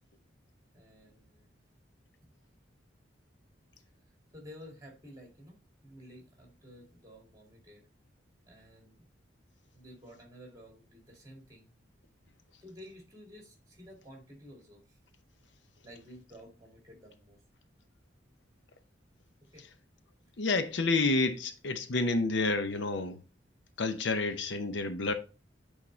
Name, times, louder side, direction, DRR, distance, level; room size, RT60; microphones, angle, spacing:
voice 1, 0.7-1.5 4.3-5.6 5.8-7.9 8.4-9.1 9.7-11.7 12.6-15.0 15.8-17.4 19.4-19.6, equal, 20° right, 2.1 m, -52 dB
voice 2, 20.4-23.2 23.8-25.1, left 3 dB, 70° left, 0.7 m, -29 dB
8.5 x 4.2 x 3.2 m
head